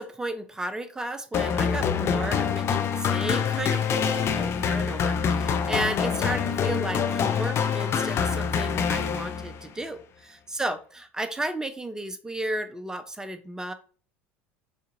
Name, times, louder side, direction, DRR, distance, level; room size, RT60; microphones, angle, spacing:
voice 1, 0.0-10.0 10.5-13.7, right 1 dB, 10° right, 9 dB, 0.7 m, -33 dB
sound 1, 1.3-9.7, left 7 dB, 40° left, 0.6 m, -25 dB
6.5 x 2.7 x 2.6 m, 0.40 s
hypercardioid pair, 70°, 7 cm